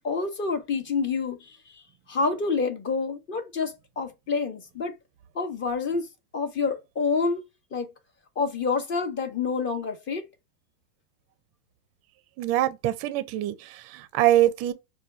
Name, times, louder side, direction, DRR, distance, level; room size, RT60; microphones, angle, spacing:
voice 1, 0.0-1.8 2.1-4.9 5.3-6.1 6.3-7.5 7.7-7.9 8.4-10.3, left 4 dB, 25° left, 0.7 m, -28 dB
voice 2, 12.4-14.7, right 13 dB, 35° right, 0.4 m, -24 dB
5.4 x 2.3 x 2.4 m
hypercardioid pair, 120°, 46 cm